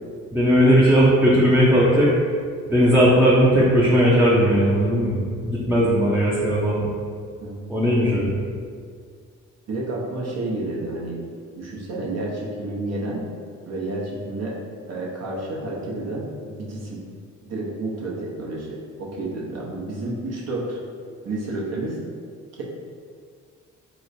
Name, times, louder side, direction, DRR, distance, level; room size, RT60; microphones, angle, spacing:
voice 1, 0.3-2.1 2.7-6.9 7.7-8.4, equal, 5° right, -8 dB, 0.5 m, -17 dB
voice 2, 7.4-7.7 9.7-11.2 11.6-13.2 13.7-14.6 14.9-17.0 17.4-20.8 21.2-22.0, right 2 dB, 55° right, -4 dB, 0.8 m, -30 dB
3.1 x 3.1 x 2.6 m, 2.1 s
cardioid pair, 90°, 30 cm